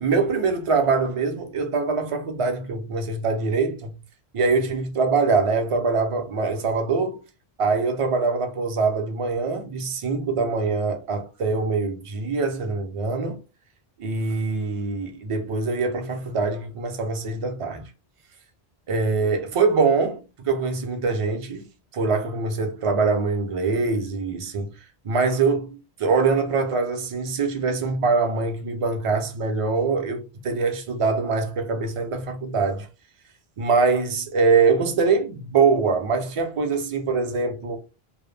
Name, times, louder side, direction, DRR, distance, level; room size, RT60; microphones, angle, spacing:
voice 1, 0.0-3.9 4.3-7.2 7.6-13.4 14.0-17.9 18.9-21.6 21.9-24.7 25.0-32.9 33.6-37.8, right 4 dB, 50° right, 0.4 m, -23 dB
2.1 x 2.1 x 3.1 m
omnidirectional pair, 1.1 m